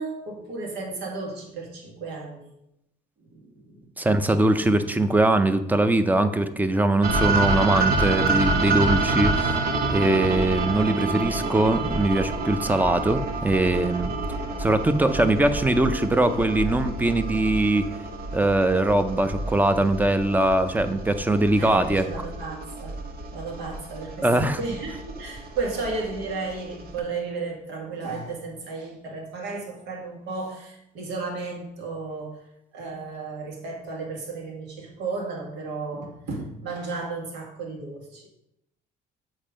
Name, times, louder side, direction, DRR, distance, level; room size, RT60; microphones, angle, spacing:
voice 1, 0.0-2.5 3.3-3.8 15.7-16.0 21.6-23.0 23.3-32.4 32.7-38.3, right 3 dB, 80° right, 0 dB, 2.1 m, -34 dB
voice 2, 4.0-9.7 9.9-14.1 14.6-17.9 18.3-22.0 24.2-24.6, right 2 dB, 10° right, 10 dB, 0.6 m, -22 dB
sound 1, 7.0-27.0, right 3 dB, 65° right, 1.1 m, -28 dB
7.3 x 4.4 x 5.1 m, 0.82 s
cardioid pair, 110°, 17 cm